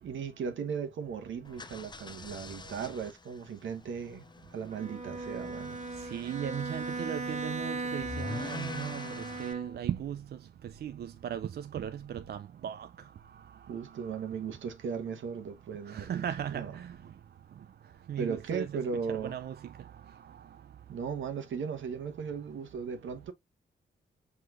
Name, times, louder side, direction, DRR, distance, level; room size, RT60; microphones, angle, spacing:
voice 1, 0.0-5.8 13.7-16.7 18.2-19.4 20.9-23.3, right 6 dB, 70° right, 1.0 m, -37 dB
sound 1, 1.4-9.5, left 3 dB, 20° left, 0.5 m, -45 dB
Bowed string instrument, 4.7-10.0, right 3 dB, 35° right, 0.9 m, -38 dB
voice 2, 6.0-12.9 13.3-14.3 15.9-17.1 18.1-20.4, right 9 dB, 50° right, 0.4 m, -38 dB
6.0 x 3.1 x 2.4 m
supercardioid pair, 45°, 21 cm